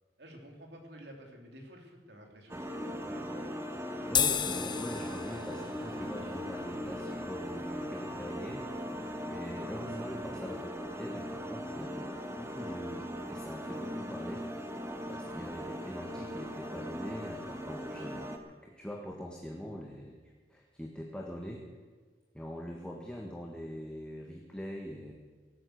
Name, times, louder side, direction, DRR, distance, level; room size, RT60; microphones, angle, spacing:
voice 1, 0.2-3.2 3.7-4.1, equal, 75° right, 2 dB, 3.2 m, -52 dB
sound 1, 2.5-18.4, equal, 15° right, 1.3 m, -39 dB
sound 2, 4.1-10.7, left 8 dB, 25° left, 0.7 m, -37 dB
voice 2, 4.1-8.7 9.3-12.1 12.4-14.5 15.1-18.2 18.6-20.2 20.5-21.7 22.3-25.1, equal, 5° left, 0 dB, 1.5 m, -43 dB
17.5 x 9.4 x 8.0 m, 1.5 s
head